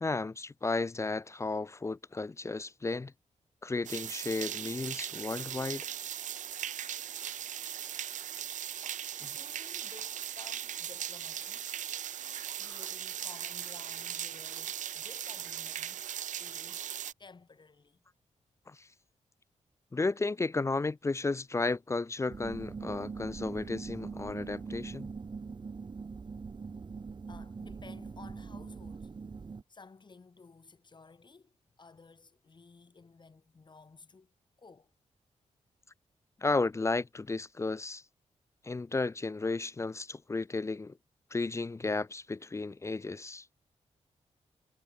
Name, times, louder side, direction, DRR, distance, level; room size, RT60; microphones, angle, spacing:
voice 1, 0.0-3.1 3.6-5.9 9.2-9.3 18.7-18.9 19.9-25.1 36.4-38.0 38.6-41.0 41.3-43.4, left 3 dB, 25° left, 0.4 m, -33 dB
sound 1, 3.8-17.1, right 10 dB, 85° right, 0.9 m, -39 dB
voice 2, 9.3-11.7 12.5-16.1 16.4-16.9 17.2-18.0 27.3-29.1 29.7-34.9, left 4 dB, 40° left, 2.6 m, -55 dB
sound 2, 22.3-29.6, right 5 dB, 40° right, 0.9 m, -42 dB
cardioid pair, 80°, 12 cm